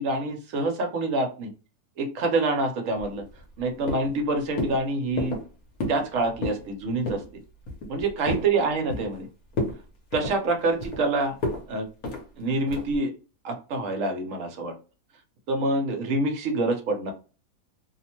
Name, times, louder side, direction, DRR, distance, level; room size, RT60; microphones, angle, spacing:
voice 1, 0.0-1.5 2.0-3.3 3.6-5.4 5.9-7.2 7.9-9.3 10.1-11.4 11.7-11.9 12.4-13.1 13.4-14.7 15.5-17.1, right 2 dB, 65° right, 4 dB, 1.0 m, -26 dB
sound 1, 3.0-3.6 3.9-4.2 4.6-4.8 5.2-5.5 5.8-6.1 6.3-6.7 7.1-7.3 7.7-8.5 8.9-9.2 9.5-9.8 10.1-11.0 11.4-11.6 12.0-12.2 12.7-13.0, left 1 dB, 75° left, 1.2 m, -31 dB
2.8 x 2.1 x 2.9 m, 0.34 s
omnidirectional pair, 1.6 m